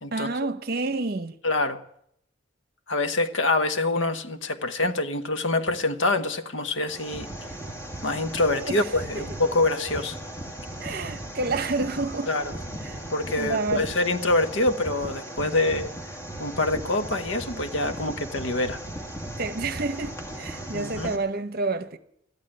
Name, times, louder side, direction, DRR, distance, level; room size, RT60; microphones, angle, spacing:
voice 1, 0.1-1.4 8.7-8.9 9.1-9.2 10.8-12.3 12.8-13.0 13.4-13.9 19.4-22.0, right 3 dB, 50° right, 0.9 m, -29 dB
voice 2, 1.4-1.8 2.9-7.3 8.0-10.2 12.3-12.5 13.1-15.9 16.4-18.8 20.7-21.1, left 2 dB, 70° left, 1.0 m, -25 dB
sound 1, 6.9-21.2, right 1 dB, 15° left, 1.7 m, -37 dB
13.5 x 10.5 x 8.8 m
head